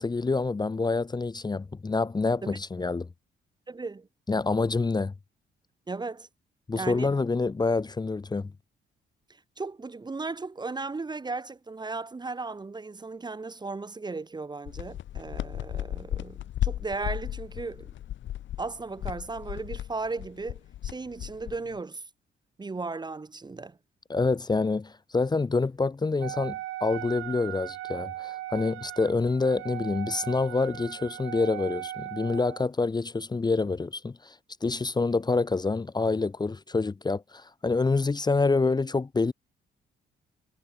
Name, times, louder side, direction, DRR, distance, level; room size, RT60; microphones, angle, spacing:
voice 1, 0.0-3.1 4.3-5.1 6.7-8.5 24.1-34.3 34.6-39.3, left 3 dB, 20° left, 0.9 m, -27 dB
voice 2, 3.7-4.1 5.9-6.3 6.7-7.1 9.6-17.9 18.6-22.0 22.6-23.8, right 3 dB, 20° right, 0.9 m, -36 dB
sound 1, 14.7-21.8, left 12 dB, 70° left, 1.5 m, -35 dB
Wind instrument woodwind instrument, 26.2-32.7, right 15 dB, 80° right, 1.0 m, -38 dB
cardioid pair, 90°, 20 cm